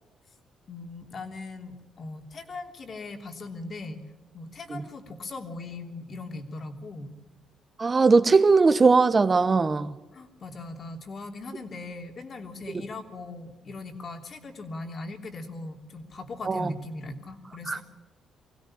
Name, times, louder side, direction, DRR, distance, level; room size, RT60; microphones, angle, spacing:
voice 1, 0.7-4.0 4.3-7.1 10.1-17.8, left 3 dB, 45° left, 3.2 m, -39 dB
voice 2, 7.8-9.9 16.5-16.7 17.7-17.8, right 4 dB, 30° right, 1.1 m, -20 dB
24.0 x 16.5 x 8.8 m
cardioid pair, 90°, 0 cm